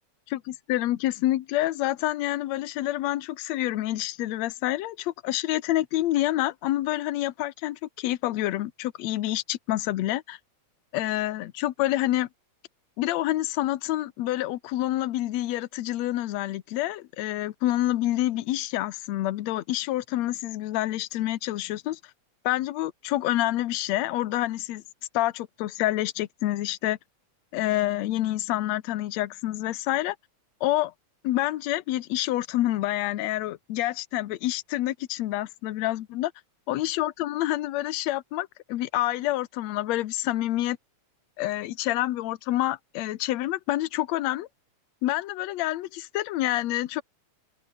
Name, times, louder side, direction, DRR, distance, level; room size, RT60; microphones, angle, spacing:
voice 1, 0.3-10.4 10.9-12.3 13.0-22.0 22.4-24.8 25.1-27.0 27.5-30.2 30.6-30.9 31.2-36.3 36.7-40.8 41.4-44.5 45.0-47.0, left 15 dB, 70° left, 2.1 m, -27 dB
open air
omnidirectional pair, 3.3 m